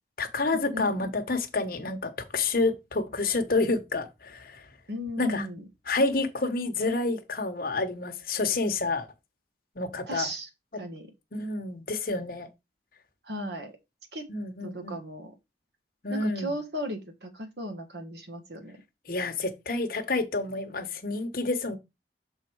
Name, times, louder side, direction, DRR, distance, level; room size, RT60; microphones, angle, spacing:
voice 1, 0.2-4.6 5.2-5.5 5.9-9.1 9.8-10.3 11.3-12.5 14.3-15.0 16.0-16.5 19.1-21.8, left 3 dB, 50° left, 1.1 m, -29 dB
voice 2, 4.9-5.6 10.1-11.1 13.2-13.7 14.1-14.3 14.6-15.3 16.1-18.8, equal, 65° right, 1.5 m, -36 dB
6.3 x 4.0 x 4.6 m
head